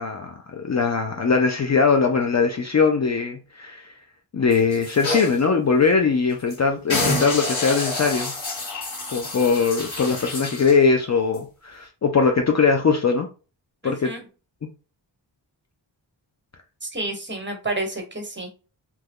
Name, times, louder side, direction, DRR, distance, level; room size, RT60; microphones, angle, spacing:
voice 1, 0.0-3.9 4.3-8.3 9.1-13.3 13.8-14.1, left 5 dB, 40° left, 0.5 m, -21 dB
sound 1, 4.5-5.4 5.9-6.0 6.3-6.6 6.9-10.8 11.3-11.4, left 2 dB, 75° left, 1.6 m, -28 dB
voice 2, 13.8-14.2 16.8-18.5, right 2 dB, 25° right, 1.2 m, -30 dB
3.0 x 2.2 x 3.6 m
cardioid pair, 60°, 46 cm